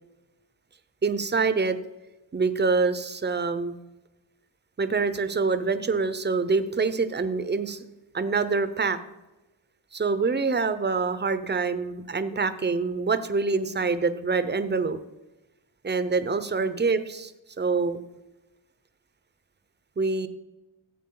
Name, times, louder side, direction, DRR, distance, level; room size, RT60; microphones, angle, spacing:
voice 1, 1.0-1.8 2.3-3.7 4.8-7.8 8.1-9.0 9.9-15.0 15.8-17.3 17.6-18.0 20.0-20.3, right 4 dB, 20° right, 12 dB, 0.7 m, -25 dB
14.5 x 8.2 x 3.9 m, 1.0 s
wide cardioid pair, 100°, 48 cm